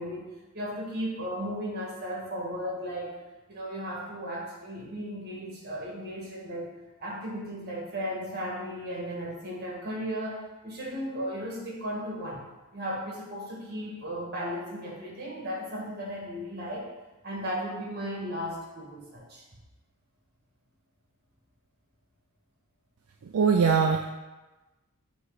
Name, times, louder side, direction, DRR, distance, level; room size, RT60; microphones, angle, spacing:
voice 1, 0.0-3.2 3.5-6.7 7.0-12.4 12.7-16.8 17.2-19.4, equal, 50° right, -3 dB, 1.7 m, -35 dB
voice 2, 23.3-24.0, right 6 dB, 70° right, 3 dB, 0.4 m, -21 dB
7.9 x 3.1 x 3.9 m, 1.1 s
head